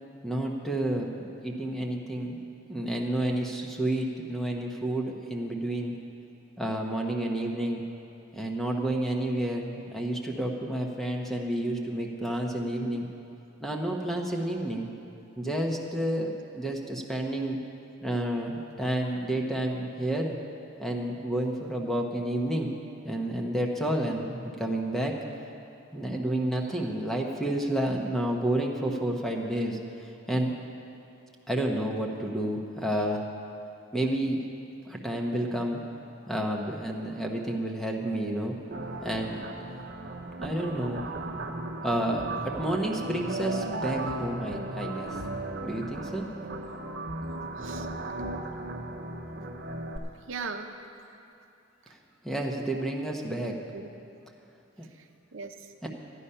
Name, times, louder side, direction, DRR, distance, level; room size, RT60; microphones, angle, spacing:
voice 1, 0.2-2.4 2.7-5.9 6.6-7.8 8.3-13.1 13.6-14.9 15.4-17.6 18.0-20.4 20.8-22.7 23.0-25.1 25.9-30.5 31.5-33.2 33.9-34.4 34.8-35.8 36.3-38.6 39.0-39.5 40.4-41.1 41.8-45.1 45.6-46.3 52.2-53.5 54.8-54.9 55.8-55.9, right 1 dB, ahead, 0 dB, 0.9 m, -30 dB
sound 1, 38.7-50.0, right 2 dB, 55° right, 0.9 m, -36 dB
voice 2, 47.6-47.9 50.3-50.7 51.1-51.2 53.5-53.9 54.9-55.7, right 4 dB, 75° right, 5 dB, 0.7 m, -40 dB
13.5 x 9.9 x 5.6 m, 2.7 s
head